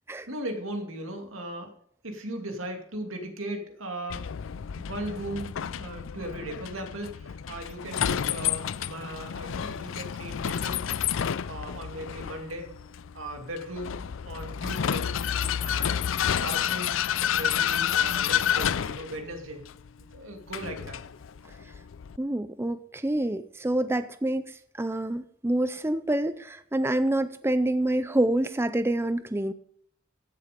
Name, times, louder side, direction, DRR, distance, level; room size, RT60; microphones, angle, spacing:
voice 1, 0.3-1.7 2.0-4.2 4.8-10.9 11.5-12.7 13.1-15.1 15.6-17.0 17.3-19.7 20.1-21.0, right 1 dB, 90° right, 4 dB, 2.5 m, -37 dB
Vehicle, 4.1-22.2, left 9 dB, 75° left, 0.4 m, -30 dB
voice 2, 22.2-29.5, right 1 dB, 10° right, 12 dB, 0.4 m, -27 dB
15.5 x 7.2 x 5.1 m, 0.64 s
head